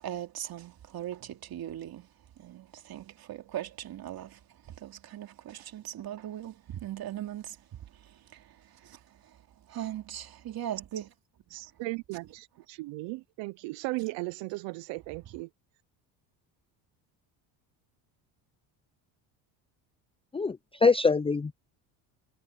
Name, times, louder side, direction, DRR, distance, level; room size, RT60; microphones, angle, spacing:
voice 1, 0.0-2.1 2.4-4.4 4.8-7.8 8.3-8.4 8.8-9.0 9.7-11.1, right 11 dB, 50° right, 3.1 m, -39 dB
voice 2, 11.5-15.5, right 23 dB, 75° right, 0.7 m, -37 dB
voice 3, 20.3-21.6, left 4 dB, 15° left, 0.5 m, -24 dB
cardioid pair, 110°, 45 cm